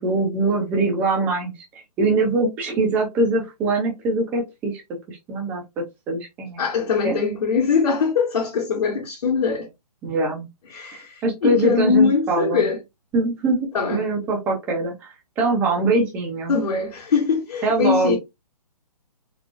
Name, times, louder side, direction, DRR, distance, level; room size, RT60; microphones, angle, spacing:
voice 1, 0.0-4.8 5.1-6.6 7.0-7.2 10.0-10.5 11.2-12.6 13.1-16.5 17.6-18.2, right 2 dB, 10° right, 0.5 m, -23 dB
voice 2, 6.6-9.7 10.7-12.8 13.7-14.1 16.5-18.2, left 5 dB, 55° left, 1.2 m, -22 dB
3.8 x 2.4 x 2.4 m
hypercardioid pair, 155°, 21 cm